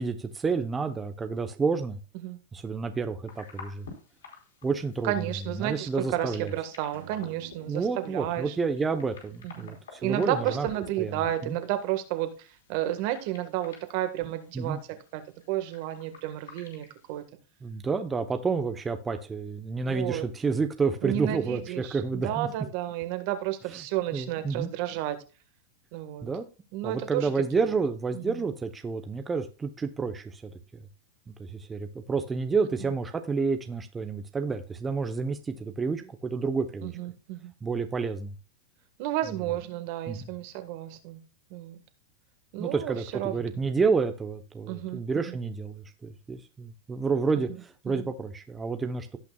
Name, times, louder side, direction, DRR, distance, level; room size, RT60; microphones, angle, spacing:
voice 1, 0.0-2.0 2.5-3.9 4.6-5.3 5.6-6.5 7.7-10.7 11.0-11.1 11.5-11.6 14.5-14.8 17.6-22.5 24.1-24.7 26.2-26.5 26.8-30.8 31.4-36.9 37.6-38.3 40.1-40.3 42.6-49.2, right 4 dB, 15° right, 0.8 m, -29 dB
sound 1, 3.3-17.2, left 5 dB, 85° left, 4.4 m, -51 dB
voice 2, 5.0-8.6 9.4-15.2 15.5-17.2 19.8-20.2 21.0-25.2 25.9-26.3 26.7-27.3 27.6-27.8 28.1-28.4 32.8-32.9 36.8-37.5 39.0-41.2 41.5-41.8 42.5-43.5 44.7-45.0 45.2-45.4 47.8-48.1, right 13 dB, 55° right, 1.6 m, -32 dB
sound 2, 6.9-10.7, right 9 dB, 80° right, 1.4 m, -52 dB
17.0 x 5.8 x 2.3 m
supercardioid pair, 130°, 0 cm